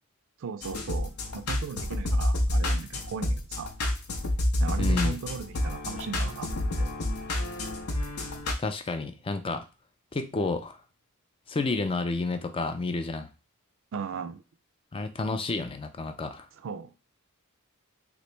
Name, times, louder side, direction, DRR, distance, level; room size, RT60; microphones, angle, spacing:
voice 1, 0.4-3.7 4.6-6.5 6.8-6.9 13.9-14.4 16.6-16.9, right 6 dB, 60° right, 0.4 m, -37 dB
sound 1, 0.6-8.5, left 1 dB, 85° left, 0.7 m, -28 dB
voice 2, 4.8-5.2 8.6-9.7 10.1-10.8 11.5-13.3 14.9-16.5, left 3 dB, 25° left, 0.3 m, -30 dB
3.0 x 2.9 x 3.2 m
head